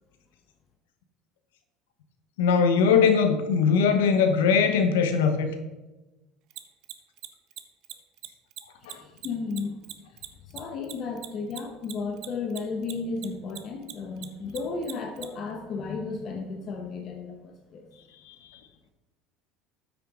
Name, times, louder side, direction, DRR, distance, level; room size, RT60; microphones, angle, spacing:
voice 1, 2.4-5.5 8.9-9.0, left 6 dB, 85° left, 7 dB, 0.9 m, -21 dB
Mechanisms, 6.5-13.3 13.5-15.3, right 15 dB, 60° right, 0.7 m, -39 dB
voice 2, 8.8-9.8 10.5-17.9, left 4 dB, 50° left, 3 dB, 1.0 m, -34 dB
8.8 x 6.0 x 3.8 m, 1.1 s
hypercardioid pair, 85°, 0 cm